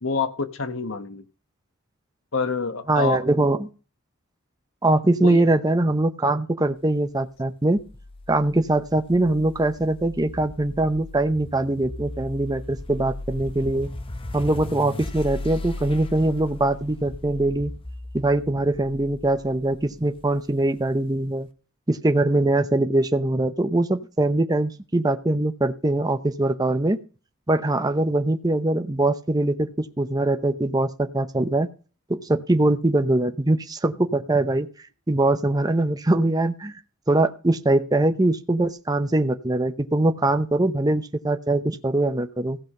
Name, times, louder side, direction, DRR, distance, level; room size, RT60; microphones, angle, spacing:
voice 1, 0.0-1.2 2.3-3.2 5.2-5.5, left 5 dB, 70° left, 11 dB, 1.2 m, -27 dB
voice 2, 2.9-3.7 4.8-7.8 8.3-13.9 14.3-17.7 18.1-21.5 21.9-27.0 27.5-31.7 32.1-34.7 35.1-36.7 37.1-42.6, right 2 dB, 20° right, 8 dB, 0.7 m, -22 dB
sound 1, 7.8-20.9, left 2 dB, 25° left, 1.0 m, -37 dB
16.0 x 5.6 x 5.4 m, 0.36 s
head